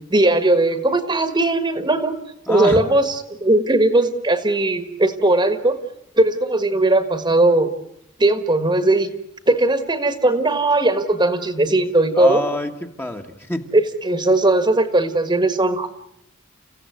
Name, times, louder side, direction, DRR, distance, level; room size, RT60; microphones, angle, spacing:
voice 1, 0.1-2.1 2.5-5.8 6.2-7.7 8.2-9.1 9.5-12.4 13.7-15.9, right 2 dB, 25° right, 9 dB, 1.6 m, -18 dB
voice 2, 2.5-2.8 12.2-13.6, left 1 dB, 10° left, 4 dB, 1.5 m, -26 dB
30.0 x 16.0 x 9.4 m, 0.80 s
head